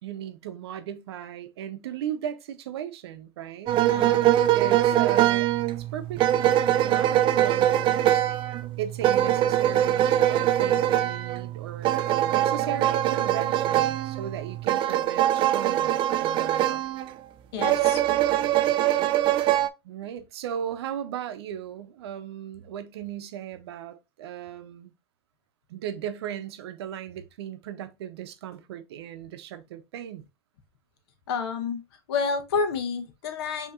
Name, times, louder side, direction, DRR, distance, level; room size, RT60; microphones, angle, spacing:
voice 1, 0.0-3.7 4.5-5.5 5.8-8.1 8.8-16.9 19.8-24.9 25.7-30.3, right 9 dB, 80° right, 0.6 m, -37 dB
sound 1, 3.7-17.1 17.6-19.7, right 12 dB, 40° right, 0.4 m, -23 dB
voice 2, 3.8-4.3 17.5-18.0 31.3-31.8 32.1-33.7, left 5 dB, 75° left, 0.9 m, -29 dB
5.4 x 2.9 x 2.4 m
hypercardioid pair, 105°, 13 cm